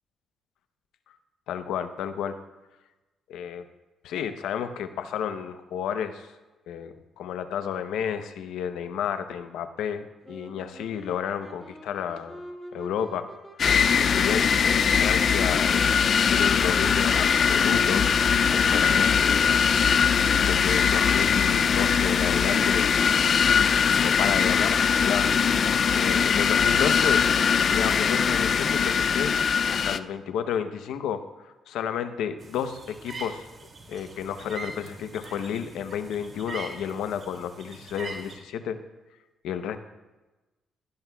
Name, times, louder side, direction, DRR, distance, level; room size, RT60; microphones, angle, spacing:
voice 1, 1.5-2.4 3.3-3.7 4.0-6.3 6.7-12.4 12.7-13.3 13.8-16.0 16.3-18.0 18.5-19.5 20.5-23.0 24.0-25.3 25.9-27.3 27.5-29.3 29.7-33.5 33.9-38.8 39.4-39.8, left 8 dB, 85° left, 9 dB, 0.8 m, -31 dB
sound 1, 10.2-20.7, equal, 10° right, 2.3 m, -44 dB
sound 2, 13.6-30.0, left 6 dB, 50° left, 0.4 m, -21 dB
sound 3, 32.4-38.3, right 3 dB, 45° right, 2.5 m, -42 dB
17.0 x 12.5 x 2.3 m, 1.1 s
cardioid pair, 90°, 0 cm